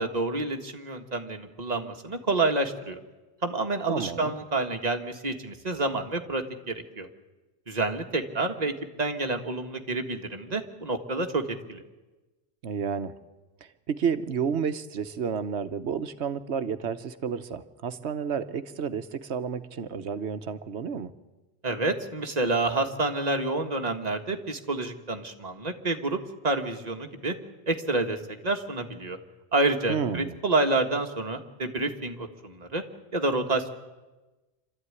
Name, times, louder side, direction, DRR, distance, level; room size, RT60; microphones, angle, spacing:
voice 1, 0.0-3.0 3.4-7.1 7.7-8.7 9.0-11.8 21.6-27.3 27.7-29.2 29.5-32.8 33.1-33.7, right 2 dB, 35° right, 4 dB, 1.7 m, -28 dB
voice 2, 3.9-4.4 12.6-13.1 13.9-21.1 29.9-30.3, right 6 dB, 75° right, 11 dB, 1.3 m, -31 dB
26.0 x 13.5 x 9.7 m, 1.2 s
omnidirectional pair, 1.1 m